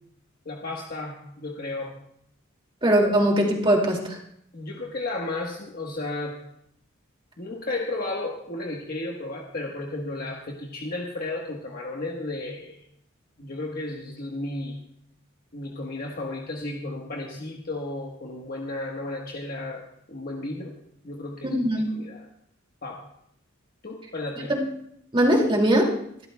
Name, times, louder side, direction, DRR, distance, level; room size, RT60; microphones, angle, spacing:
voice 1, 0.4-2.0 4.5-6.4 7.4-12.8 13.4-14.8 15.5-19.8 20.1-20.7 21.0-21.6 22.0-22.2 22.8-23.0 23.8-24.5, left 2 dB, 50° left, -1 dB, 1.3 m, -33 dB
voice 2, 2.8-4.2 21.4-21.9 24.5-24.6 25.1-25.9, right 1 dB, 25° right, 0 dB, 2.4 m, -20 dB
26.5 x 12.5 x 2.3 m, 0.71 s
head